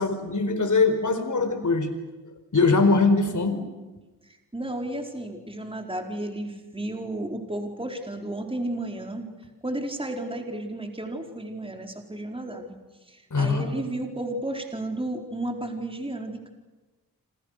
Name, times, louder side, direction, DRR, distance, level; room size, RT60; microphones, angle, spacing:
voice 1, 0.0-1.9 2.5-3.6 13.3-13.7, left 3 dB, 50° left, 9 dB, 4.7 m, -22 dB
voice 2, 4.3-9.3 9.6-12.8 13.1-16.5, right 1 dB, 15° right, 2 dB, 4.5 m, -33 dB
29.0 x 26.5 x 6.7 m, 1.2 s
cardioid pair, 55°, 37 cm